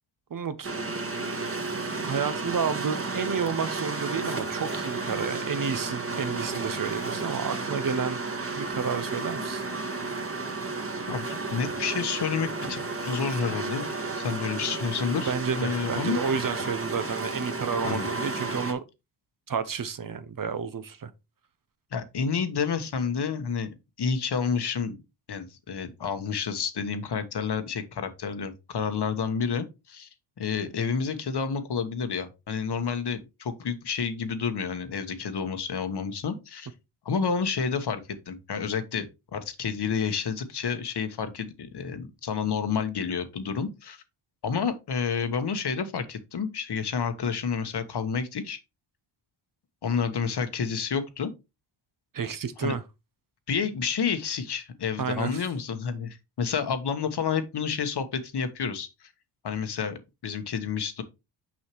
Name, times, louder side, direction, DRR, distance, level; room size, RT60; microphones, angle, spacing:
voice 1, 0.3-0.7 2.1-8.2 8.5-9.6 15.2-18.8 19.5-21.1 52.1-52.8 55.0-55.4, right 6 dB, 40° right, 0.8 m, -31 dB
sound 1, 0.6-18.7, right 3 dB, 25° right, 1.7 m, -32 dB
voice 2, 11.1-16.2 17.8-18.1 21.9-23.7 24.0-25.0 25.3-30.1 30.4-36.7 37.0-39.1 39.3-44.0 44.4-48.6 49.8-51.3 52.6-52.7 53.5-58.9 59.4-61.0, left 6 dB, 55° left, 1.2 m, -30 dB
6.1 x 5.5 x 3.1 m
cardioid pair, 70°, 49 cm